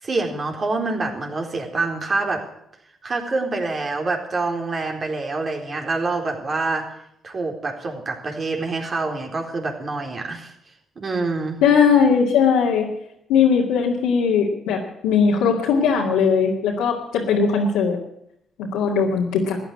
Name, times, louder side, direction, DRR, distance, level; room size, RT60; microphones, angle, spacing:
voice 1, 0.0-2.4 3.0-6.9 7.2-10.5 11.0-11.6, right 3 dB, 45° right, 3 dB, 4.0 m, -26 dB
voice 2, 11.6-12.9 13.3-18.0 18.6-19.6, left 6 dB, 90° left, -4 dB, 2.2 m, -19 dB
14.0 x 9.8 x 8.5 m, 0.76 s
supercardioid pair, 60°, 0 cm